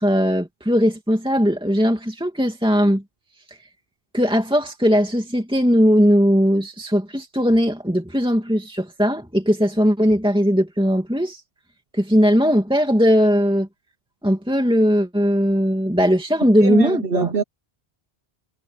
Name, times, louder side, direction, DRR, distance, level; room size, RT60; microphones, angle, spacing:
voice 1, 0.0-3.0 4.1-11.4 11.9-13.7 14.2-17.3, equal, 5° right, 2.6 m, -19 dB
voice 2, 16.6-17.4, right 5 dB, 65° right, 1.2 m, -23 dB
omnidirectional pair, 1.0 m